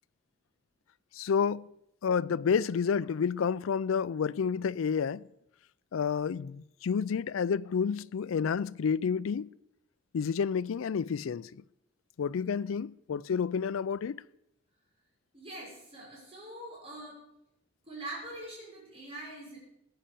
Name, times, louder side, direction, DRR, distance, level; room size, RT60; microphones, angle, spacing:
voice 1, 1.2-1.7 2.0-5.2 5.9-9.5 10.1-11.5 12.2-14.2, left 6 dB, 80° left, 0.4 m, -30 dB
voice 2, 15.3-17.2 17.8-19.6, right 1 dB, 30° right, 6.0 m, -43 dB
16.0 x 8.6 x 6.8 m
head